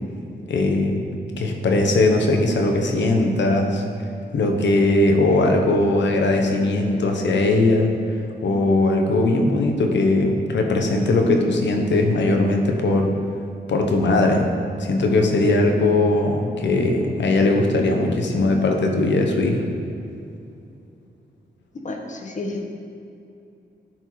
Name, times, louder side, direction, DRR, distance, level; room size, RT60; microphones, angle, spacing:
voice 1, 0.5-1.0 1.4-3.8 4.3-7.9 8.4-13.1 13.7-14.5 14.8-19.6, left 2 dB, 80° left, 2 dB, 1.1 m, -19 dB
voice 2, 21.8-22.7, left 2 dB, 45° left, 2 dB, 1.1 m, -30 dB
12.0 x 4.5 x 4.6 m, 2.6 s
wide cardioid pair, 125°, 18 cm